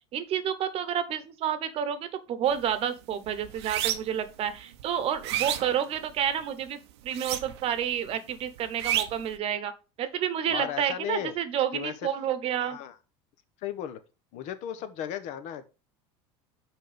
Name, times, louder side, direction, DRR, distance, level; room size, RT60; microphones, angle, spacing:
voice 1, 0.1-9.7 10.0-12.8, right 9 dB, 45° right, 12 dB, 1.0 m, -30 dB
sound 1, 2.5-2.8 3.1-4.3 4.7-6.4 7.1-7.8 8.1-9.3, right 12 dB, 85° right, 0.8 m, -31 dB
voice 2, 10.5-11.3 11.7-11.9 12.6-13.0 13.6-14.0 14.3-15.6, left 10 dB, 60° left, 12 dB, 1.1 m, -35 dB
6.1 x 4.5 x 5.1 m, 0.31 s
supercardioid pair, 115°, 14 cm